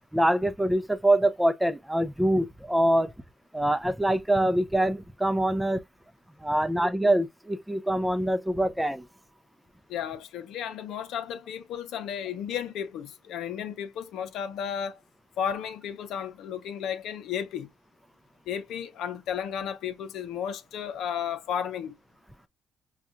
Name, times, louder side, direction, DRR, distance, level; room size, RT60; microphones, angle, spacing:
voice 1, 0.1-3.1 3.5-5.8 6.4-9.0, right 1 dB, 5° right, 0.5 m, -24 dB
voice 2, 9.9-15.0 15.4-17.7 18.5-22.0, left 8 dB, 85° left, 0.7 m, -33 dB
5.6 x 2.3 x 2.5 m
cardioid pair, 90°, 0 cm